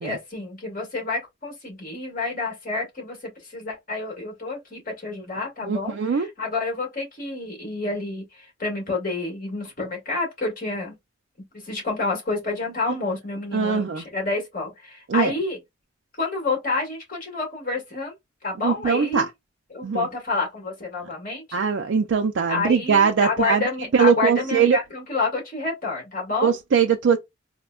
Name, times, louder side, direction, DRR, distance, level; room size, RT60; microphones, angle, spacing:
voice 1, 0.0-11.0 11.5-15.6 16.2-18.2 18.4-19.3 19.7-21.6 22.5-26.6, left 3 dB, 45° left, 1.8 m, -29 dB
voice 2, 5.6-6.3 13.5-14.0 15.1-15.3 18.6-19.3 19.8-20.1 21.5-23.6 23.9-24.8 26.4-27.2, right 6 dB, 65° right, 0.4 m, -21 dB
4.2 x 2.1 x 2.3 m
head